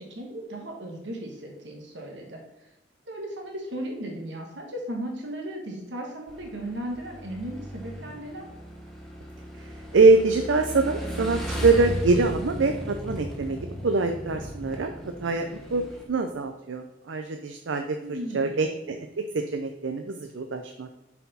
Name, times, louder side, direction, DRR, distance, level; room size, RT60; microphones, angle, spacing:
voice 1, 0.0-2.7 3.1-8.5 18.0-18.7, right 1 dB, 70° right, 1 dB, 1.3 m, -36 dB
Motorcycle / Engine, 6.3-16.0, equal, ahead, 1.1 m, -36 dB
voice 2, 9.6-15.8 16.1-18.0 18.3-21.0, right 3 dB, 85° right, 6 dB, 0.5 m, -24 dB
7.0 x 4.6 x 4.1 m, 0.94 s
head